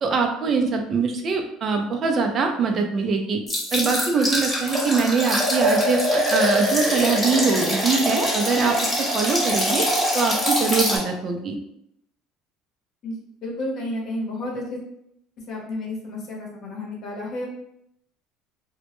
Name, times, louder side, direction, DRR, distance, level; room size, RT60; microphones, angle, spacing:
voice 1, 0.0-3.4 3.7-9.9 10.1-11.6, right 4 dB, 40° right, 4 dB, 0.4 m, -23 dB
sound 1, 3.5-11.0, equal, 10° left, 1.0 m, -23 dB
voice 2, 13.4-14.8 15.5-17.5, left 1 dB, 50° left, -2 dB, 0.8 m, -31 dB
2.1 x 2.0 x 2.9 m, 0.76 s
supercardioid pair, 110°, 0 cm